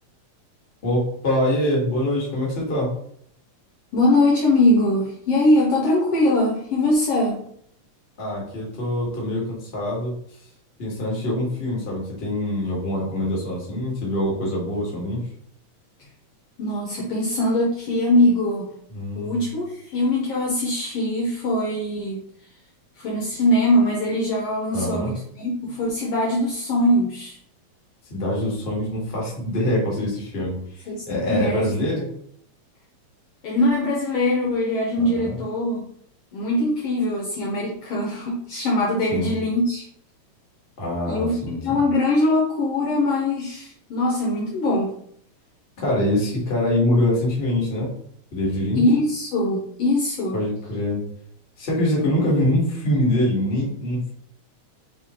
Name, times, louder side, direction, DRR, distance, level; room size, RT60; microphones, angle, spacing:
voice 1, 0.8-2.9 8.2-10.1 10.8-15.2 18.9-19.4 24.7-25.1 28.1-32.1 35.0-35.4 39.1-39.3 40.8-41.8 45.8-47.9 48.3-48.8 50.3-51.0 51.6-54.1, left 1 dB, 30° left, -3 dB, 1.1 m, -24 dB
voice 2, 3.9-7.4 16.6-18.7 19.1-22.2 23.0-27.4 30.9-31.7 33.4-35.8 36.3-39.8 41.0-44.9 48.8-50.4, left 1 dB, 70° left, -2 dB, 1.5 m, -22 dB
4.4 x 3.6 x 2.9 m, 0.66 s
omnidirectional pair, 3.3 m